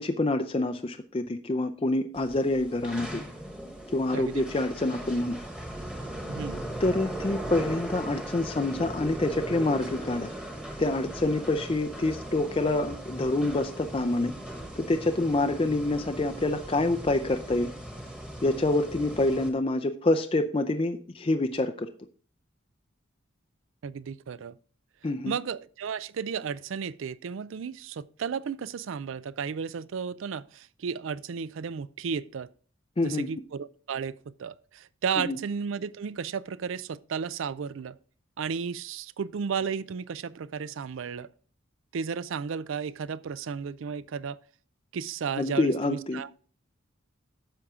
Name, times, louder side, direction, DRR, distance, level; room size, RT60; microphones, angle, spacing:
voice 1, 0.0-3.2 3.9-5.4 6.8-10.3 10.8-14.3 14.8-17.7 18.4-21.9 25.0-25.4 33.0-33.3 35.2-35.4 45.4-46.2, left 2 dB, 25° left, 0.4 m, -27 dB
sound 1, 2.1-19.5, right 1 dB, 5° right, 1.3 m, -38 dB
voice 2, 4.1-4.4 6.3-6.6 23.8-24.6 25.3-32.5 33.0-38.0 38.4-41.3 41.9-44.4 44.9-46.3, right 6 dB, 70° right, 0.4 m, -33 dB
10.0 x 7.0 x 3.6 m
head